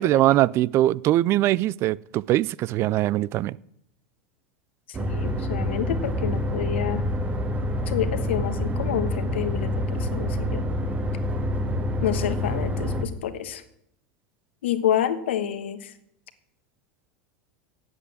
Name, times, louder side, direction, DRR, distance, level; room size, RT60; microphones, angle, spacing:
voice 1, 0.0-3.6, right 14 dB, 45° right, 23 dB, 0.4 m, -22 dB
voice 2, 4.9-7.0 7.9-10.6 12.0-13.6 14.6-15.9, left 10 dB, 80° left, 10 dB, 1.2 m, -28 dB
sound 1, 4.9-13.1, left 1 dB, 25° right, 1.6 m, -27 dB
8.4 x 8.0 x 8.4 m, 0.74 s
hypercardioid pair, 95°, 6 cm